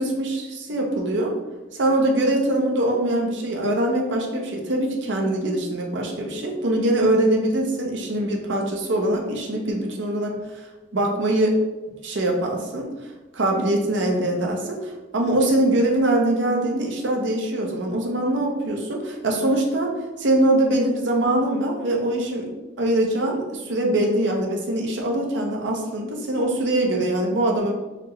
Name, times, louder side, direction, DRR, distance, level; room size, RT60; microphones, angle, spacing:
voice 1, 0.0-1.3 1.7-10.4 10.9-11.6 12.0-12.9 13.3-19.9 20.2-22.5 22.8-27.7, right 1 dB, 75° right, 0 dB, 0.7 m, -23 dB
4.2 x 2.9 x 3.1 m, 1.1 s
head